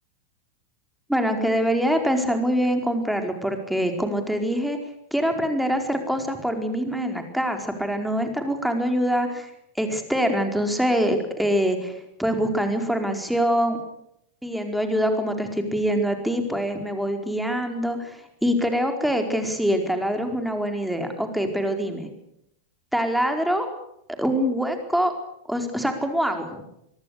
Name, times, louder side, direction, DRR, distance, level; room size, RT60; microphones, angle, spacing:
voice 1, 1.1-4.8 5.1-9.5 9.8-13.8 14.4-22.1 22.9-23.7 24.2-25.1 25.5-26.6, equal, ahead, 5 dB, 4.6 m, -24 dB
25.0 x 22.5 x 6.7 m, 0.78 s
figure-of-eight pair, 90°, 0 cm